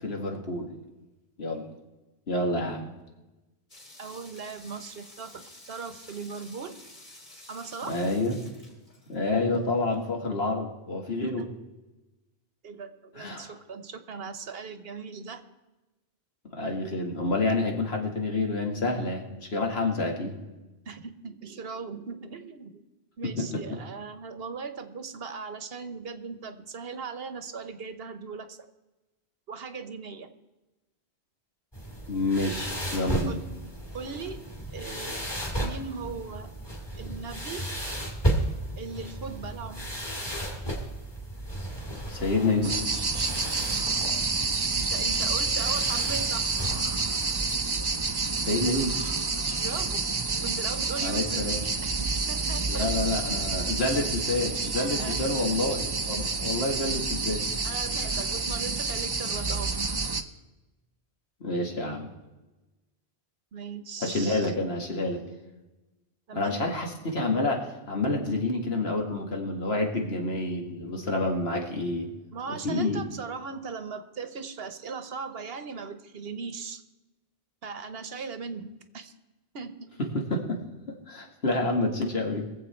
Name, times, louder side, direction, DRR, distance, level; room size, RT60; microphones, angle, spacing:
voice 1, 0.0-0.7 1.4-1.7 2.3-2.9 7.9-8.4 9.1-11.4 13.2-13.5 16.5-20.4 23.4-23.6 32.1-33.4 42.1-42.8 48.5-49.1 51.0-51.6 52.7-57.5 58.1-58.2 61.4-62.1 64.0-65.2 66.3-72.1 72.5-73.0 80.1-80.6 81.1-82.4, left 2 dB, 80° left, 1 dB, 2.3 m, -28 dB
sound 1, 3.7-9.5, left 1 dB, 45° left, 3.3 m, -51 dB
voice 2, 4.0-6.8 7.5-8.0 11.2-11.5 12.6-15.4 20.8-22.8 23.2-28.6 29.5-30.3 33.3-33.4 33.9-34.4 34.7-35.3 35.6-36.5 36.9-37.7 38.8-39.9 44.8-46.5 49.6-50.0 50.4-51.5 52.0-52.9 55.0-55.3 57.6-59.7 63.5-64.5 66.3-66.7 72.3-76.8 77.6-78.7 78.9-79.1 79.5-79.9, right 5 dB, 70° right, 10 dB, 1.2 m, -38 dB
sound 2, 31.7-47.6, right 1 dB, 25° left, 2.5 m, -34 dB
sound 3, 42.6-60.2, right 4 dB, 30° right, 0.6 m, -29 dB
22.5 x 7.7 x 4.4 m, 1.1 s
omnidirectional pair, 1.1 m